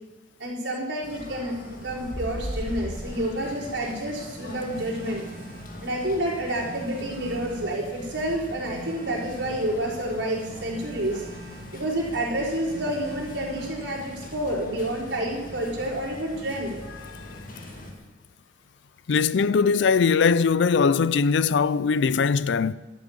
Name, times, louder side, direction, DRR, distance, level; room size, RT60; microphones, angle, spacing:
voice 1, 0.4-5.2 5.8-11.2 11.7-16.8, right 1 dB, 80° right, 4.2 m, -29 dB
sound 1, 1.0-17.9, left 1 dB, 50° left, 2.1 m, -40 dB
Telephone, 4.6-5.8 6.6-7.8 8.6-9.8 10.6-11.8 12.6-13.8, right 4 dB, 25° right, 2.7 m, -44 dB
voice 2, 19.1-22.7, left 5 dB, 80° left, 0.4 m, -21 dB
12.5 x 7.4 x 8.5 m
head